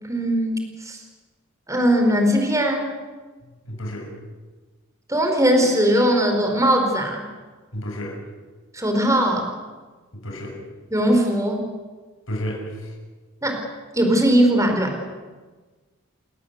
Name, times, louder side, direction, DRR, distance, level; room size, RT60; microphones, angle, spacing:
voice 1, 0.1-1.0 1.7-2.9 5.1-7.2 8.7-9.5 10.9-11.7 13.4-13.6 13.9-15.0, equal, 15° right, 4 dB, 4.5 m, -20 dB
voice 2, 3.4-4.1 7.7-8.2 10.1-10.6 12.3-12.7, equal, 65° left, 1 dB, 6.9 m, -31 dB
30.0 x 18.5 x 8.2 m, 1.3 s
head